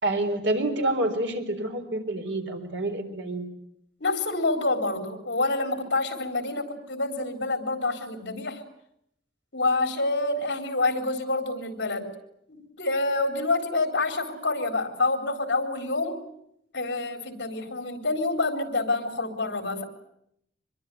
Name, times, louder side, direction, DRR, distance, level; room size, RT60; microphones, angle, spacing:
voice 1, 0.0-3.5, right 1 dB, 85° right, 6 dB, 4.0 m, -28 dB
voice 2, 4.0-8.6 9.5-12.1 12.5-16.2 16.7-19.8, left 2 dB, 70° left, 6 dB, 4.0 m, -27 dB
25.0 x 22.5 x 9.3 m, 0.76 s
head